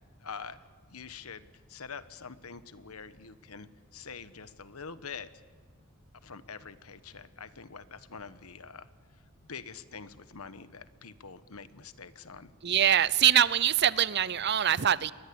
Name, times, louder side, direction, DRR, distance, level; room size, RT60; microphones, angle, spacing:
voice 1, 0.2-0.6 0.9-5.3 6.2-8.9 9.5-12.5, left 5 dB, 90° left, 13 dB, 1.2 m, -45 dB
voice 2, 12.6-15.1, right 10 dB, 50° right, 18 dB, 0.7 m, -24 dB
29.0 x 21.5 x 8.6 m, 1.5 s
head